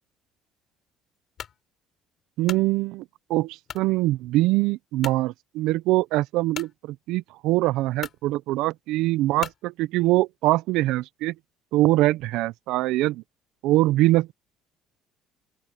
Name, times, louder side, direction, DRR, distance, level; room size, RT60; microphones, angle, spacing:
sound 1, 1.4-1.6 2.2-2.7 3.7-3.9 4.4-4.5 5.0-5.2 6.5-6.7 7.5-7.6 8.0-8.2 9.4-9.6, left 9 dB, 50° left, 4.1 m, -37 dB
voice 1, 2.4-3.0 3.3-11.3 11.7-13.2 13.6-14.3, right 17 dB, 75° right, 0.7 m, -23 dB
open air
supercardioid pair, 85°, 0 cm